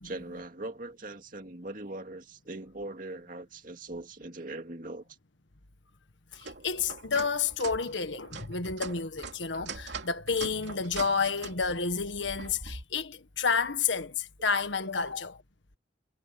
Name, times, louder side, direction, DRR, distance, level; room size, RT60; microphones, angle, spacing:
voice 1, 0.0-5.0, right 2 dB, 45° right, 2.3 m, -41 dB
voice 2, 6.3-15.4, left 5 dB, 75° left, 1.6 m, -30 dB
sound 1, 6.3-12.8, right 4 dB, 70° right, 3.0 m, -42 dB
head